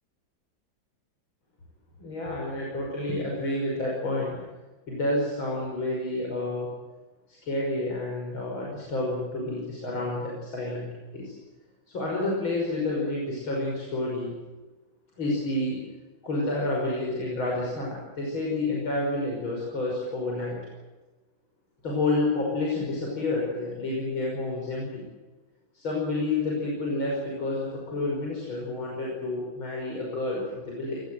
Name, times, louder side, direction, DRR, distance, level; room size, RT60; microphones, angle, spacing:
voice 1, 2.0-4.4 4.9-6.7 7.3-10.9 11.1-11.3 11.9-14.3 15.2-15.8 16.2-20.6 21.8-25.0 25.7-31.0, left 2 dB, 80° left, -3 dB, 6.7 m, -29 dB
25.5 x 21.0 x 7.9 m, 1.2 s
omnidirectional pair, 2.2 m